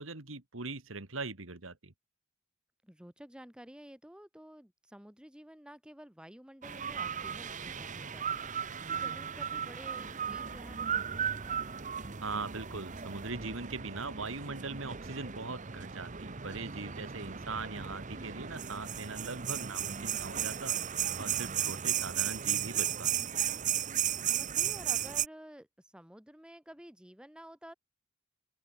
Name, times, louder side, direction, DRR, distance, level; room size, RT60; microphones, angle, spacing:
voice 1, 0.0-1.9 12.2-23.3, right 3 dB, 70° right, 2.4 m, -41 dB
voice 2, 2.8-11.8 24.2-27.7, equal, 5° right, 1.6 m, -52 dB
sound 1, 6.6-25.3, right 9 dB, 40° right, 1.0 m, -35 dB
open air
head